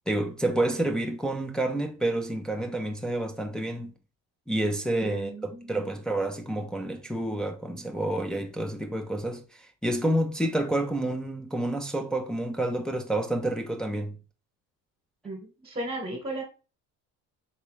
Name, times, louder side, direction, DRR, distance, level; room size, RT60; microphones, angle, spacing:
voice 1, 0.1-3.9 4.5-9.4 9.8-14.1, right 1 dB, ahead, 0.6 m, -29 dB
voice 2, 5.0-5.9 15.2-16.4, right 1 dB, 25° right, 1.3 m, -36 dB
4.2 x 3.3 x 3.1 m
cardioid pair, 100°, 35 cm